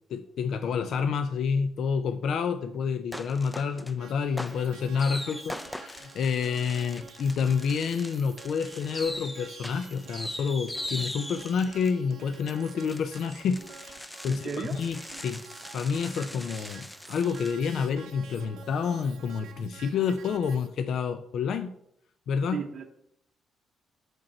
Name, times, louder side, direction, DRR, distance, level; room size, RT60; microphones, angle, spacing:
voice 1, 0.1-15.4 15.7-21.7 22.3-22.6, left 6 dB, 70° left, 9 dB, 0.4 m, -29 dB
sound 1, 3.1-4.0 4.4-17.5, left 1 dB, 10° left, 0.4 m, -41 dB
sound 2, 4.0-20.7, right 7 dB, 85° right, 0.7 m, -49 dB
voice 2, 14.3-14.8 22.5-22.8, right 5 dB, 45° right, 1 dB, 0.7 m, -34 dB
6.0 x 5.1 x 4.2 m, 0.73 s
cardioid pair, 90°, 0 cm